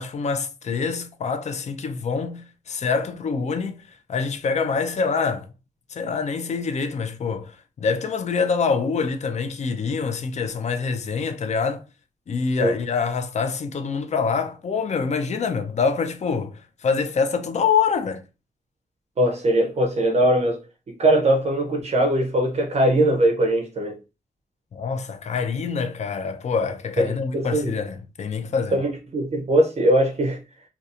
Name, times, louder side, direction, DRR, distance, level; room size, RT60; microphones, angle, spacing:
voice 1, 0.0-3.8 4.1-5.5 5.9-11.8 12.3-18.2 24.7-28.8, left 5 dB, 50° left, 0.4 m, -25 dB
voice 2, 19.2-20.6 20.9-24.0 27.0-27.7 28.7-30.4, right 1 dB, 50° right, 0.5 m, -21 dB
2.7 x 2.2 x 2.4 m
cardioid pair, 85°, 15 cm